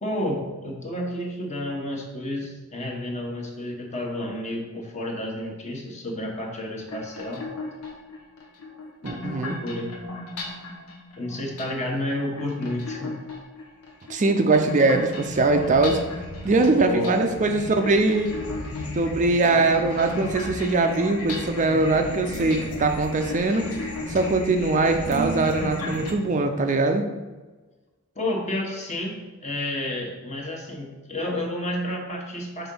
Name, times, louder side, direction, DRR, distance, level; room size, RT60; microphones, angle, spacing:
voice 1, 0.0-7.5 9.0-9.9 11.2-13.2 16.8-17.3 19.4-19.5 28.1-32.7, left 1 dB, 30° left, 0 dB, 1.2 m, -31 dB
sound 1, 6.8-26.1, left 1 dB, 85° left, 1.1 m, -35 dB
voice 2, 9.0-9.6 14.1-16.0 16.4-18.3 18.9-23.7 24.1-27.0, right 3 dB, 35° right, 5 dB, 0.4 m, -21 dB
6.1 x 3.7 x 5.4 m, 1.2 s
head